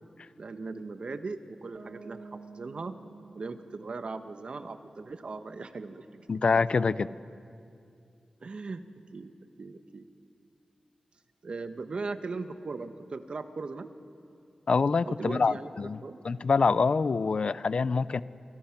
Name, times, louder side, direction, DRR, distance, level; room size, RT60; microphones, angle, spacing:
voice 1, 0.4-3.0 3.3-6.3 8.4-8.8 9.1-9.3 9.6-10.0 11.4-13.9 15.1-16.2, right 3 dB, 60° right, 8 dB, 1.3 m, -38 dB
Bass guitar, 1.7-5.6, right 4 dB, 75° right, 3.5 m, -51 dB
voice 2, 6.3-7.1 14.7-16.0 16.2-18.2, left 4 dB, 55° left, 16 dB, 0.6 m, -25 dB
29.0 x 26.0 x 6.0 m, 2.5 s
wide cardioid pair, 125°, 2 cm